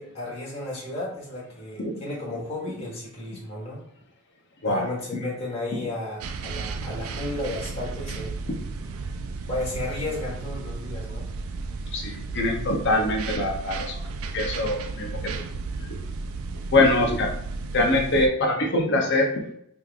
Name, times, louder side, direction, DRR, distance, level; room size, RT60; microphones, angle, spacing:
voice 1, 0.0-3.8 4.6-8.4 9.4-11.3, left 2 dB, 25° left, -6 dB, 1.4 m, -33 dB
sound 1, 6.2-18.3, right 4 dB, 65° right, 0.3 m, -34 dB
voice 2, 11.9-14.0 14.3-15.3 15.8-16.0 16.7-17.3 17.7-19.5, left 2 dB, 50° left, 2 dB, 0.6 m, -23 dB
3.5 x 3.1 x 2.4 m, 0.70 s
head